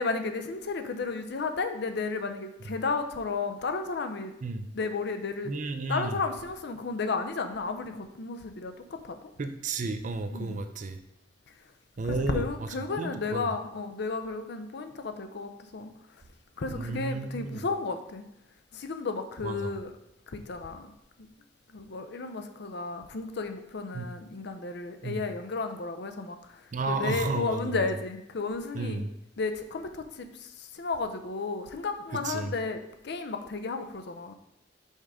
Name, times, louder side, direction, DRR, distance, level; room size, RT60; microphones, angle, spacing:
voice 1, 0.0-4.3 4.7-5.5 5.9-9.2 10.3-10.6 12.1-15.9 16.6-18.3 18.7-19.9 20.3-20.9 21.7-29.0 29.4-32.8 33.0-34.3, left 4 dB, 65° left, 7 dB, 0.5 m, -33 dB
voice 2, 5.4-6.2 9.4-11.0 12.0-12.7 13.0-13.5 16.7-17.6 19.4-19.7 23.9-24.1 25.0-25.2 26.7-27.8 28.7-29.1 32.1-32.5, right 3 dB, 45° right, 8 dB, 0.5 m, -32 dB
5.4 x 3.6 x 4.9 m, 0.86 s
head